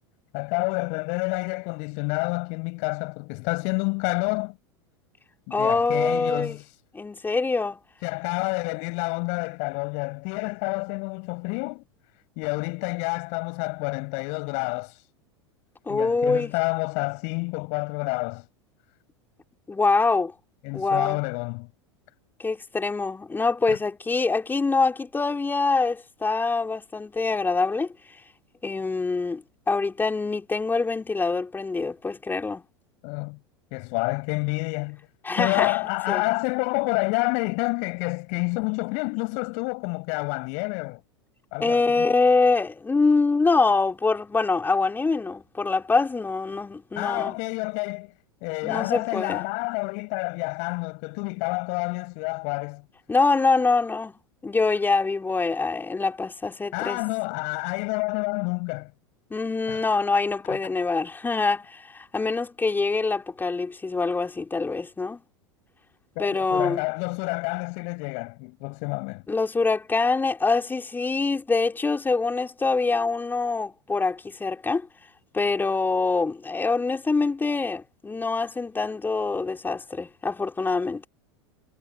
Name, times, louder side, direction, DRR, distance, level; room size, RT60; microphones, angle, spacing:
voice 1, 0.3-4.6 5.5-6.7 8.0-11.8 12.4-15.1 15.9-18.5 20.6-21.7 23.7-23.8 33.0-33.4 33.7-35.0 35.4-41.0 41.5-42.1 46.9-48.1 48.4-52.8 56.7-58.9 59.7-59.8 60.5-60.6 66.1-69.2, left 37 dB, 50° left, 6.5 m, -28 dB
voice 2, 5.5-6.6 6.9-7.8 15.9-16.5 19.7-20.3 20.7-21.2 22.4-27.9 28.6-32.6 35.2-35.8 36.1-36.2 41.6-47.4 48.6-49.4 53.1-57.0 59.3-65.2 66.2-66.8 69.3-74.9 75.3-81.1, left 3 dB, 15° left, 4.5 m, -24 dB
figure-of-eight pair, 85°, 15 cm